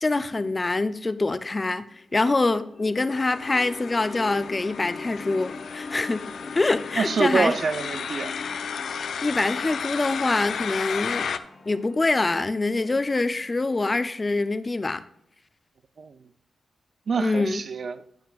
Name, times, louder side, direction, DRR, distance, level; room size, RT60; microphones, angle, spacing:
voice 1, 0.0-1.9 2.1-6.3 6.5-7.5 9.2-11.3 11.7-15.0 17.2-17.6, left 3 dB, 35° left, 0.7 m, -25 dB
sound 1, 1.9-14.0, left 4 dB, 55° left, 1.3 m, -42 dB
sound 2, 3.1-11.4, left 6 dB, 75° left, 0.5 m, -34 dB
voice 2, 7.0-8.3 16.0-16.2 17.1-18.0, right 5 dB, 65° right, 0.6 m, -26 dB
17.5 x 5.9 x 2.5 m
supercardioid pair, 40°, 0 cm